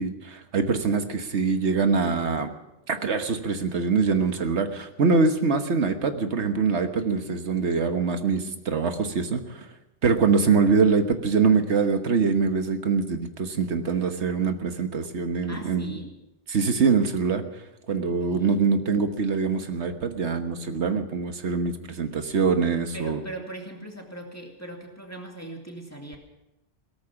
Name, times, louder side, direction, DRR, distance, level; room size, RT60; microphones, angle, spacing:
voice 1, 0.0-2.5 2.9-9.7 10.0-15.9 16.5-17.4 17.9-23.2, right 5 dB, 70° right, 7 dB, 1.5 m, -24 dB
voice 2, 15.5-16.1 18.0-18.8 22.9-26.2, right 2 dB, 15° left, 1 dB, 2.4 m, -40 dB
17.0 x 14.0 x 5.9 m, 0.92 s
omnidirectional pair, 1.2 m